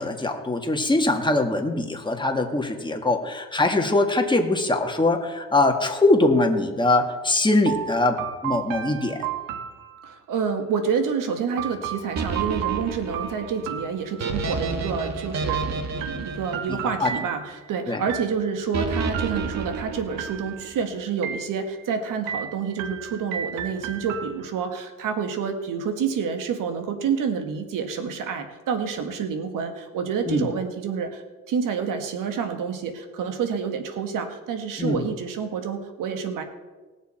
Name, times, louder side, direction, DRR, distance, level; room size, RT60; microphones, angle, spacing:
voice 1, 0.0-9.2 16.7-17.1 17.9-18.0 30.3-30.5 34.8-35.1, left 2 dB, 15° left, 4 dB, 1.9 m, -22 dB
sound 1, 7.7-10.4 11.6-14.6 15.5-17.7 18.1-18.7 19.1-19.8 20.2-20.8 21.2-21.9 22.3-24.7, right 10 dB, 85° right, 1.1 m, -34 dB
voice 2, 10.0-36.4, right 6 dB, 70° right, 7 dB, 1.8 m, -28 dB
sound 2, 12.2-17.4 18.7-20.7, right 4 dB, 55° right, 1.7 m, -30 dB
18.5 x 7.1 x 4.4 m, 1.3 s
supercardioid pair, 70°, 33 cm